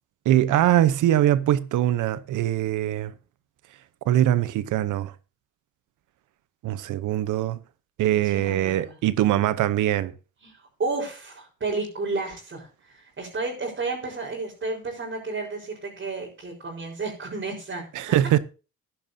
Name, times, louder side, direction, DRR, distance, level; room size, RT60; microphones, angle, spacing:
voice 1, 0.2-3.1 4.1-5.1 6.6-7.6 8.0-10.1 17.9-18.4, right 12 dB, 80° right, 0.9 m, -22 dB
voice 2, 8.2-9.0 10.4-17.8, right 3 dB, 40° right, 4.6 m, -32 dB
14.5 x 10.5 x 2.8 m
cardioid pair, 90°, 30 cm